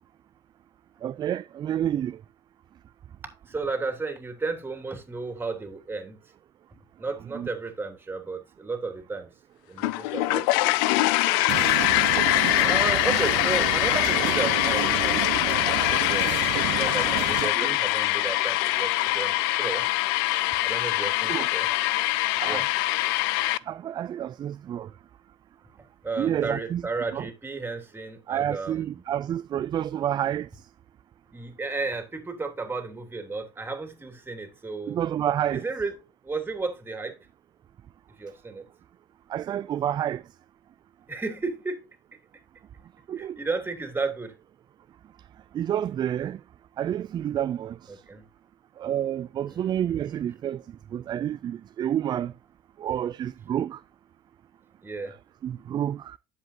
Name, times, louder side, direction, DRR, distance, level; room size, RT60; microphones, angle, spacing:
voice 1, 1.0-2.2 7.3-7.5 17.6-17.8 21.3-21.5 22.4-22.7 23.7-24.9 26.2-26.8 27.1-27.3 28.3-30.5 34.9-35.6 39.3-40.2 43.1-43.4 45.5-46.4 46.8-48.0 48.8-50.6 50.9-52.3 52.8-53.8 55.4-56.2, right 10 dB, 40° right, 0.4 m, -29 dB
voice 2, 3.5-6.2 7.0-9.3 9.7-11.4 12.6-19.9 20.6-21.7 22.4-22.6 26.0-29.0 31.3-35.0 35.5-37.2 38.2-38.7 41.1-41.9 43.2-44.3 47.9-48.3 49.5-50.2 54.8-55.2, right 3 dB, 20° right, 3.1 m, -33 dB
sound 1, 9.8-23.6, left 18 dB, 90° left, 0.4 m, -24 dB
sound 2, 11.5-17.5, right 17 dB, 80° right, 0.9 m, -31 dB
10.5 x 7.7 x 2.8 m
supercardioid pair, 95°, 12 cm